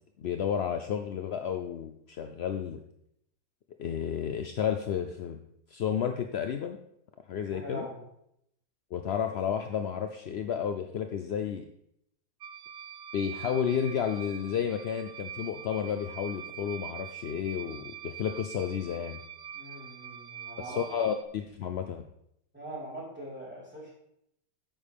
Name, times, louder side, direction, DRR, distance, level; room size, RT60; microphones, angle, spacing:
voice 1, 0.2-2.8 3.8-5.4 5.7-6.8 7.3-7.9 8.9-11.6 13.1-19.2 20.6-22.0, left 8 dB, 65° left, 6 dB, 0.6 m, -32 dB
voice 2, 7.5-8.0 19.5-20.8 22.5-23.9, right 1 dB, 5° right, -7 dB, 4.2 m, -42 dB
sound 1, 12.4-21.2, right 9 dB, 60° right, 0.9 m, -44 dB
11.5 x 8.7 x 3.6 m, 0.76 s
omnidirectional pair, 1.7 m